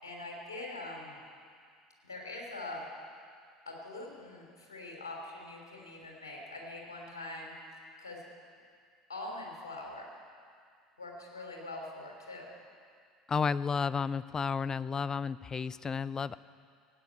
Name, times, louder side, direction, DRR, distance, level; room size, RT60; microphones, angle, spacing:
voice 1, 0.0-1.2 2.0-2.8 3.6-7.5 8.0-8.3 9.1-10.1 11.0-12.6, left 2 dB, 85° left, -1 dB, 3.4 m, -43 dB
voice 2, 13.3-16.4, left 5 dB, 30° left, 17 dB, 0.5 m, -32 dB
16.5 x 9.4 x 8.6 m, 2.1 s
hypercardioid pair, 70°, 2 cm